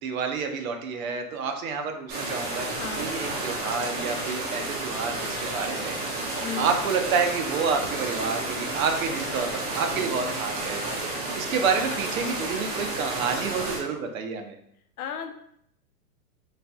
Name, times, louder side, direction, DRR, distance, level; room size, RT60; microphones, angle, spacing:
voice 1, 0.0-6.0 6.6-10.8 11.3-14.5, right 5 dB, 60° right, 5 dB, 0.7 m, -29 dB
sound 1, 2.1-13.8, right 2 dB, 20° right, 0.7 m, -31 dB
voice 2, 2.8-3.2 6.4-6.7 15.0-15.3, left 8 dB, 65° left, 6 dB, 0.7 m, -34 dB
4.2 x 3.2 x 2.3 m, 0.72 s
hypercardioid pair, 135°, 47 cm